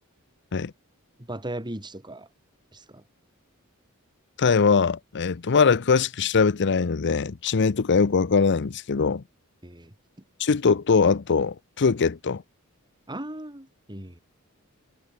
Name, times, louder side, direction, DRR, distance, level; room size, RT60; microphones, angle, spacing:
voice 1, 1.3-2.3 2.7-3.0 9.6-9.9 13.1-14.2, right 1 dB, 20° right, 4.1 m, -37 dB
voice 2, 4.4-9.2 10.4-12.4, left 5 dB, 55° left, 0.6 m, -22 dB
head